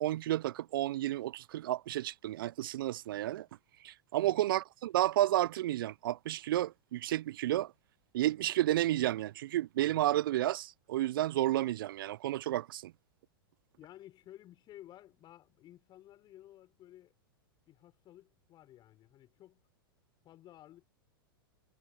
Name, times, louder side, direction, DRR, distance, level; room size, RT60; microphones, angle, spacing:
voice 1, 0.0-3.5 3.8-7.7 8.1-12.9, right 14 dB, 65° right, 0.5 m, -31 dB
voice 2, 13.8-17.1 17.7-19.6 20.2-20.8, left 13 dB, 35° left, 6.3 m, -55 dB
hypercardioid pair, 100°, 12 cm